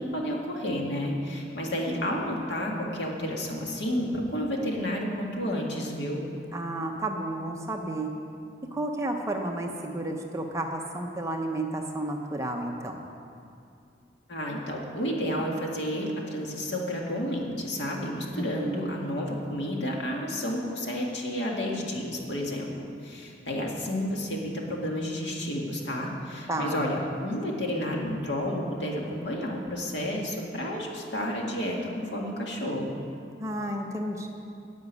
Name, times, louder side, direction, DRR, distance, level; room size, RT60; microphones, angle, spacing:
voice 1, 0.0-6.2 14.3-32.9, equal, 70° left, -1 dB, 2.0 m, -31 dB
voice 2, 6.5-8.1 8.7-13.1 18.3-19.0 26.5-26.9 33.4-34.3, right 1 dB, 15° right, 2 dB, 0.8 m, -32 dB
10.5 x 7.3 x 9.6 m, 2.5 s
head